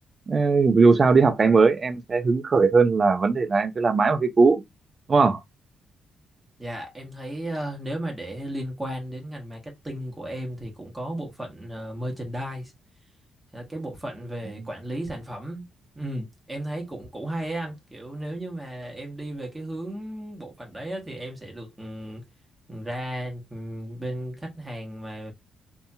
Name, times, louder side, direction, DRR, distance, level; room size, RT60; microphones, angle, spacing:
voice 1, 0.3-4.6 5.1-5.4, right 4 dB, 30° right, 0.4 m, -19 dB
voice 2, 6.6-12.7 13.5-15.6 15.9-22.2 22.7-25.3, right 1 dB, 10° right, 1.0 m, -34 dB
2.7 x 2.6 x 2.3 m
cardioid pair, 130°, 0 cm